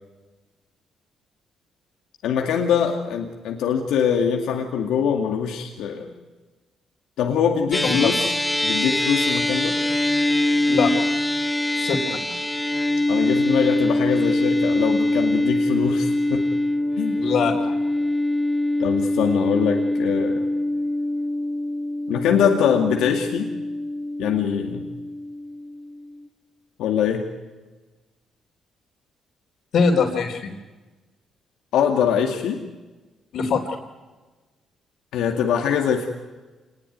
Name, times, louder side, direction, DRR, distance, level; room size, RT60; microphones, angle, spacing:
voice 1, 2.2-6.1 7.2-8.3 8.6-9.8 13.1-16.4 17.0-17.2 18.8-20.4 22.1-23.5 24.2-24.8 26.8-27.2 31.7-32.6 35.1-36.1, left 7 dB, 85° left, 2 dB, 2.3 m, -23 dB
sound 1, 7.7-26.3, left 1 dB, 5° left, 2.7 m, -23 dB
voice 2, 11.8-12.4 17.2-17.8 29.7-30.5 33.3-33.8, left 5 dB, 70° left, -4 dB, 3.9 m, -22 dB
27.5 x 20.5 x 9.5 m, 1.2 s
cardioid pair, 90°, 0 cm